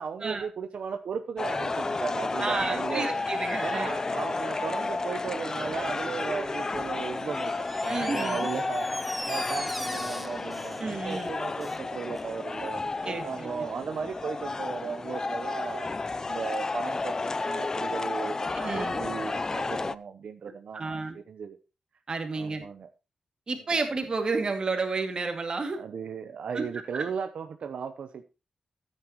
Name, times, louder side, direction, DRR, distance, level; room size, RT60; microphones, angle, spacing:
voice 1, 0.0-3.1 3.6-8.9 9.3-15.9 16.3-21.6 22.4-22.9 25.7-28.2, right 6 dB, 80° right, 7 dB, 0.9 m, -36 dB
sound 1, 1.4-20.0, left 3 dB, 30° left, 0.5 m, -32 dB
voice 2, 2.4-3.9 7.9-8.5 10.8-11.3 13.0-13.6 18.6-19.0 20.7-21.2 22.1-22.7 23.5-25.8 26.5-26.7 26.9-27.0, right 3 dB, 45° right, 5 dB, 2.3 m, -31 dB
Door, 7.3-11.9 12.2-12.3, equal, 5° right, 0.7 m, -40 dB
14.0 x 9.5 x 3.0 m, 0.29 s
wide cardioid pair, 120°, 2 cm